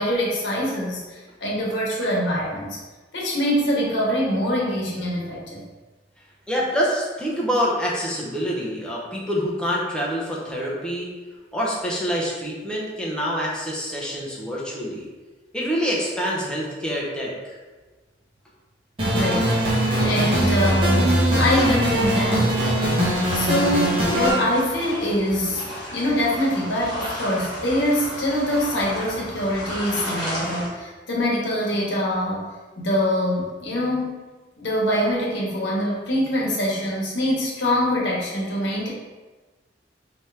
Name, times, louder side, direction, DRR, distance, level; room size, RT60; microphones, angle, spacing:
voice 1, 0.0-2.8 3.1-5.7 19.0-22.6 23.3-32.5 32.8-34.1 34.6-38.9, equal, 80° left, -3 dB, 1.0 m, -24 dB
voice 2, 6.5-11.1 11.5-15.1 15.5-17.6, equal, 5° left, -5 dB, 0.7 m, -26 dB
sound 1, 19.0-24.3, equal, 30° right, 1.1 m, -21 dB
sound 2, 23.1-30.7, equal, 25° left, 1.0 m, -34 dB
3.4 x 2.8 x 3.2 m, 1.3 s
head